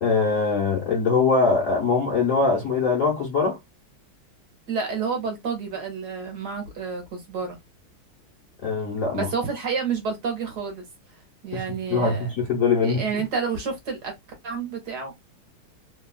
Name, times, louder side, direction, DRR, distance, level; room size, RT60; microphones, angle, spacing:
voice 1, 0.0-3.6 8.6-9.3 11.5-11.6 11.9-13.0, left 4 dB, 55° left, 1.0 m, -22 dB
voice 2, 4.7-7.6 9.1-10.8 11.4-12.3 12.8-14.1 14.4-15.1, right 5 dB, 60° right, 1.3 m, -29 dB
3.4 x 2.3 x 2.2 m
omnidirectional pair, 2.2 m